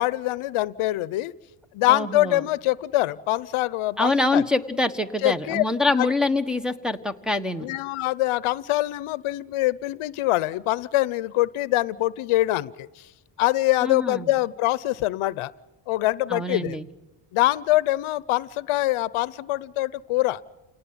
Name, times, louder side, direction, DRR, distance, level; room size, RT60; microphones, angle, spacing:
voice 1, 0.0-1.3 1.7-4.4 5.2-5.6 6.0-6.1 7.6-13.1 13.4-15.5 15.9-16.8 17.3-20.4, left 17 dB, 80° left, 19 dB, 0.8 m, -24 dB
voice 2, 1.9-2.4 4.0-7.7 13.8-14.3 16.3-16.9, left 2 dB, ahead, 3 dB, 1.4 m, -25 dB
28.5 x 18.5 x 9.7 m, 1.1 s
cardioid pair, 105°, 50 cm